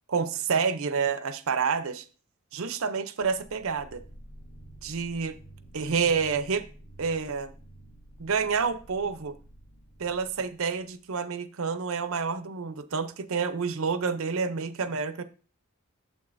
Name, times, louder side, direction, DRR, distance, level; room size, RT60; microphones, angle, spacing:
voice 1, 0.1-2.0 2.5-4.0 4.8-5.4 5.7-6.7 7.0-7.5 8.2-9.4 10.0-15.2, right 5 dB, 65° right, 0.6 m, -28 dB
sound 1, 3.2-11.0, right 1 dB, 55° left, 1.3 m, -50 dB
8.7 x 7.5 x 2.6 m
head